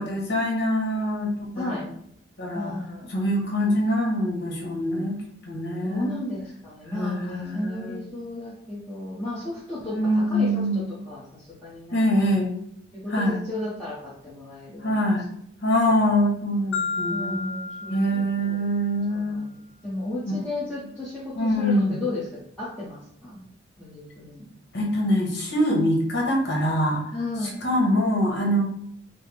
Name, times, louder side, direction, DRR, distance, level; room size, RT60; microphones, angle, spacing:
voice 1, 0.0-1.8 2.4-2.7 3.1-5.2 5.5-6.2 6.9-8.0 9.9-10.8 11.9-12.5 13.1-13.4 14.8-15.3 15.6-17.4 17.9-19.4 21.3-21.9 24.7-27.1 27.6-28.6, equal, 60° left, -1 dB, 1.2 m, -24 dB
voice 2, 1.5-1.9 2.5-3.1 5.8-12.3 12.9-15.1 15.9-16.0 17.1-18.6 19.1-19.6 19.8-23.4 23.8-24.5 27.1-27.6, left 2 dB, 5° left, -11 dB, 0.9 m, -34 dB
Marimba xylophone, 16.7-18.9, left 4 dB, 90° left, 0.5 m, -32 dB
4.4 x 2.1 x 3.4 m, 0.71 s
head